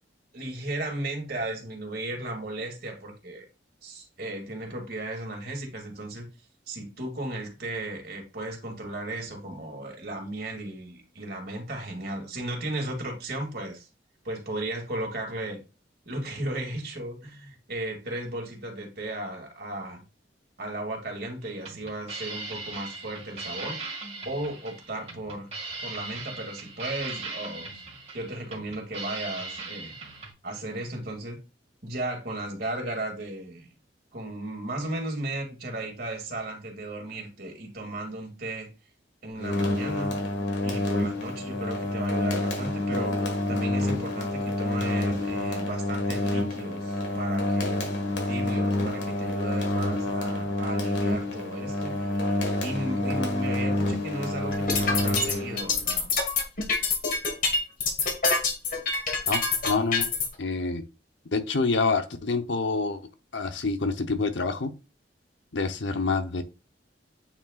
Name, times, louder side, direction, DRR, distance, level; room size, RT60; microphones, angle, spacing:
voice 1, 0.3-3.4 3.8-6.3 6.7-13.9 14.2-15.6 16.1-20.0 20.6-23.8 24.2-25.5 25.8-27.7 28.1-29.9 30.4-31.4 31.8-33.7 34.1-38.7 39.2-40.2 40.6-47.9 48.3-56.2, right 1 dB, 60° right, 2.5 m, -35 dB
sound 1, 21.4-30.3, right 3 dB, 35° right, 2.2 m, -39 dB
sound 2, 39.4-55.9, left 1 dB, 70° left, 1.8 m, -28 dB
sound 3, 54.5-60.3, left 4 dB, 50° left, 1.8 m, -25 dB
voice 2, 59.3-60.1 60.4-60.8 61.3-63.0 63.3-64.7 65.5-66.4, left 3 dB, 90° left, 0.9 m, -27 dB
8.9 x 4.7 x 2.5 m
head